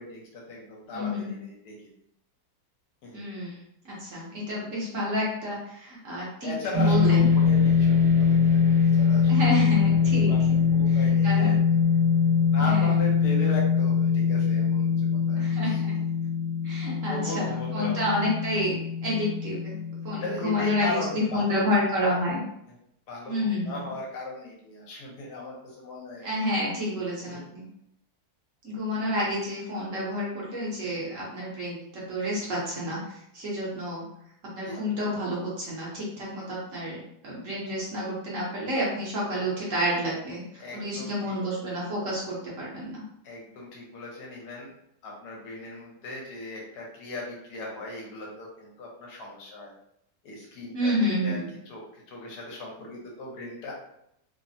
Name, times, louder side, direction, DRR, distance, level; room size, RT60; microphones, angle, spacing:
voice 1, 0.0-1.7 3.0-3.2 6.4-9.5 10.3-10.4 10.7-11.5 12.5-15.9 17.1-18.1 20.1-21.7 23.1-26.3 27.2-27.4 34.6-34.8 40.0-40.1 40.6-41.4 43.2-44.7 45.0-49.7 50.2-51.4 51.7-53.7, left 2 dB, 75° left, -2 dB, 1.3 m, -37 dB
voice 2, 0.9-1.4 3.1-3.5 3.8-6.5 6.8-7.3 9.3-10.6 10.9-11.6 12.6-12.9 15.3-15.9 16.6-18.7 19.0-19.8 20.0-22.4 23.3-23.9 26.2-27.6 28.6-33.0 33.3-34.1 34.5-43.0 50.7-51.5, left 1 dB, 55° right, -5 dB, 1.1 m, -29 dB
sound 1, 6.7-21.2, left 6 dB, 80° right, 1.3 m, -23 dB
3.2 x 2.1 x 2.6 m, 0.75 s
omnidirectional pair, 1.7 m